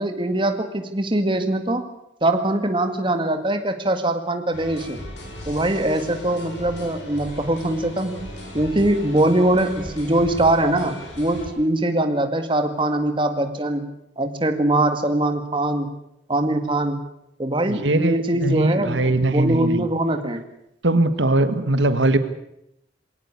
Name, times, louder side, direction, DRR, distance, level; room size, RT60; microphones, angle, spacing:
voice 1, 0.0-1.9 2.2-5.0 5.5-13.9 14.2-15.9 16.3-17.0 17.4-20.4, right 1 dB, 25° right, 7 dB, 2.0 m, -22 dB
sound 1, 4.5-11.5, left 1 dB, 70° left, 7.5 m, -37 dB
voice 2, 17.7-19.8 20.8-22.2, right 2 dB, 80° right, 11 dB, 1.5 m, -20 dB
22.0 x 18.0 x 8.5 m, 0.81 s
head